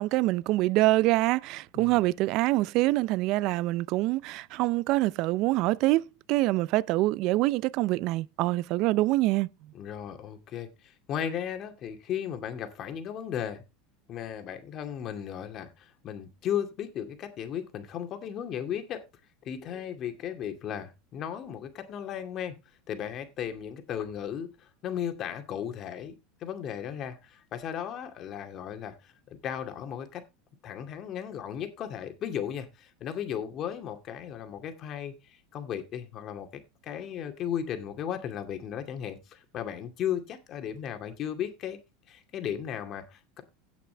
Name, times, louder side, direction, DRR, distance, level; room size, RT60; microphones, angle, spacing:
voice 1, 0.0-9.5, right 18 dB, 50° right, 0.4 m, -25 dB
voice 2, 9.7-13.6 14.1-19.0 19.4-22.6 22.9-26.2 26.4-29.1 29.4-30.2 30.6-41.8 42.1-43.4, left 9 dB, 35° left, 2.4 m, -35 dB
17.0 x 5.9 x 3.4 m
supercardioid pair, 140°, 0 cm